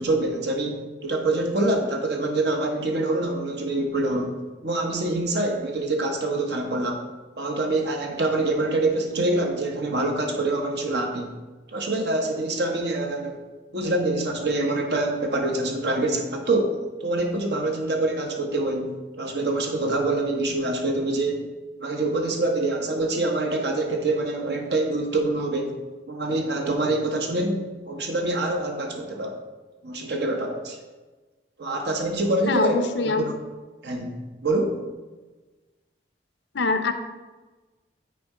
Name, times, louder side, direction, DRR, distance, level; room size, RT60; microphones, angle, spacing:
voice 1, 0.0-4.3 4.6-7.0 7.4-11.3 11.7-13.4 13.7-18.9 19.2-21.4 21.8-25.8 26.1-29.4 29.8-30.8 31.6-33.4 33.8-34.2 34.4-34.8, right 2 dB, 70° right, 2 dB, 1.0 m, -25 dB
voice 2, 32.5-33.3 36.5-36.9, left 3 dB, 85° left, 8 dB, 0.7 m, -23 dB
9.2 x 4.5 x 3.7 m, 1.3 s
head